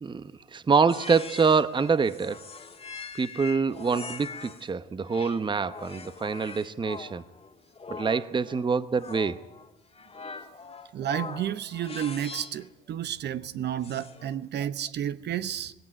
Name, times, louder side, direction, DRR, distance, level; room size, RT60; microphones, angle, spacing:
voice 1, 0.0-2.5 3.1-7.2 7.9-9.4, right 5 dB, 25° right, 0.9 m, -26 dB
sound 1, 0.9-4.7 5.1-12.7 13.8-14.4, left 5 dB, 30° left, 2.0 m, -42 dB
voice 2, 10.9-15.7, right 10 dB, 60° right, 1.0 m, -31 dB
18.0 x 17.0 x 9.9 m
cardioid pair, 85°, 20 cm